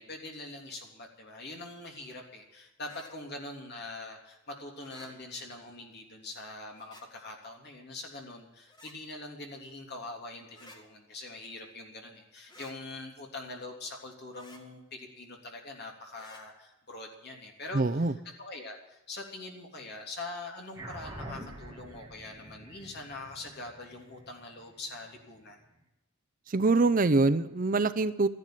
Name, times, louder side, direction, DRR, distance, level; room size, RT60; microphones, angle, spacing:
voice 1, 0.0-18.1 18.4-25.6, left 2 dB, 45° left, 1 dB, 3.2 m, -43 dB
sound 1, 2.8-3.1 4.8-5.1 6.7-7.0 8.7-9.0 10.5-10.8 12.5-12.7 14.3-14.6 16.1-16.4, left 1 dB, 20° left, 2.1 m, -53 dB
voice 2, 17.7-18.1 26.5-28.3, right 3 dB, 40° right, 14 dB, 0.5 m, -24 dB
sound 2, 20.7-25.5, right 1 dB, 15° right, 2.4 m, -46 dB
13.5 x 11.0 x 9.2 m, 0.96 s
head